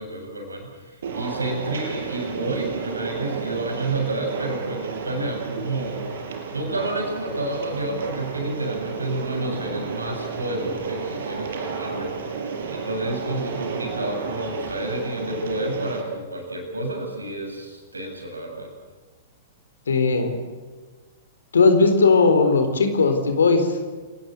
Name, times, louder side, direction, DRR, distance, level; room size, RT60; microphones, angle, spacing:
voice 1, 0.0-6.0 6.5-18.7, right 2 dB, 85° right, 3 dB, 7.8 m, -30 dB
sound 1, 1.0-16.0, right 5 dB, 65° right, 5.1 m, -32 dB
voice 2, 19.9-20.3 21.5-23.8, left 4 dB, 75° left, 7 dB, 4.0 m, -18 dB
29.5 x 20.0 x 8.1 m, 1.4 s
figure-of-eight pair, 105°, 0 cm